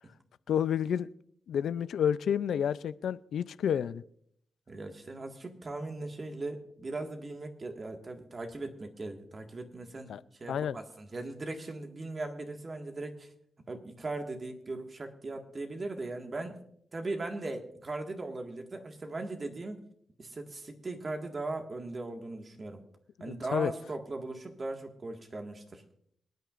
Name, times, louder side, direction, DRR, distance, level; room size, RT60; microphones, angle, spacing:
voice 1, 0.5-1.1 1.5-4.0 10.1-10.2 10.5-10.8 23.2-23.7, left 8 dB, 80° left, 15 dB, 0.4 m, -30 dB
voice 2, 4.7-13.3 13.7-16.6 16.9-19.8 20.2-22.8 23.2-25.8, right 2 dB, 35° right, 4 dB, 1.8 m, -39 dB
26.0 x 9.3 x 2.5 m, 0.67 s
cardioid pair, 85°, 0 cm